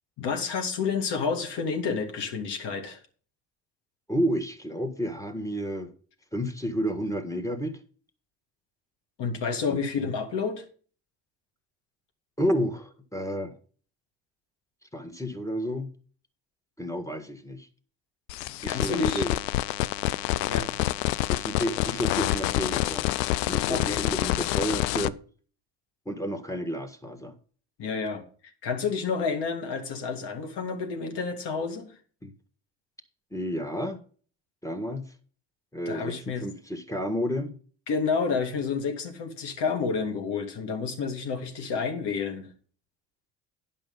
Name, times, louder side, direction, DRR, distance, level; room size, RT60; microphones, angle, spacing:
voice 1, 0.2-3.0 9.2-10.7 18.4-19.2 20.5-20.7 23.7-24.0 27.8-28.2 28.6-31.9 35.9-36.5 37.9-42.5, left 5 dB, 55° left, 2.4 m, -30 dB
voice 2, 4.1-5.9 6.3-7.8 9.7-9.8 12.4-13.5 14.9-15.9 16.8-17.7 18.6-19.4 21.3-23.1 23.5-25.2 26.0-27.3 32.2-32.3 33.3-34.0 34.6-35.1 35.7-37.5, equal, 5° left, 1.7 m, -31 dB
sound 1, 18.3-25.1, left 16 dB, 75° left, 0.6 m, -27 dB
10.5 x 5.6 x 5.4 m
hypercardioid pair, 60°, 49 cm